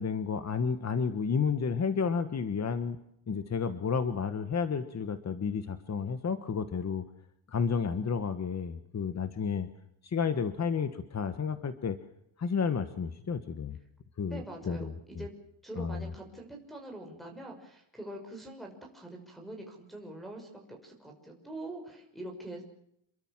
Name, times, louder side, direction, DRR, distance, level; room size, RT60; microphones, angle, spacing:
voice 1, 0.0-3.0 3.3-7.0 7.5-9.7 10.0-12.0 12.4-13.8 14.2-15.2 15.8-16.1, left 6 dB, 35° left, 10 dB, 1.5 m, -31 dB
voice 2, 14.3-15.3 15.6-22.6, right 1 dB, ahead, -1 dB, 6.1 m, -44 dB
28.5 x 22.5 x 7.5 m, 0.75 s
wide cardioid pair, 170°, 47 cm